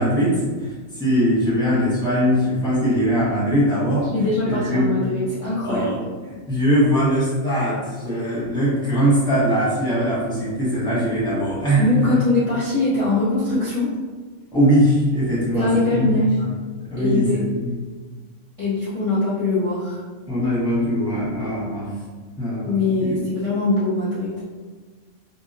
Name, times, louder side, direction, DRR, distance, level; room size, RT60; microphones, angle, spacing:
voice 1, 0.0-4.1 4.4-4.9 5.6-12.1 14.5-16.5 16.8-17.8 20.3-21.9 22.4-23.2, equal, 5° left, -9 dB, 0.8 m, -21 dB
voice 2, 4.1-5.9 11.8-13.9 15.5-16.4 17.0-17.4 18.6-20.0 22.7-24.4, left 2 dB, 35° left, -11 dB, 0.7 m, -22 dB
2.8 x 2.7 x 2.5 m, 1.4 s
omnidirectional pair, 1.3 m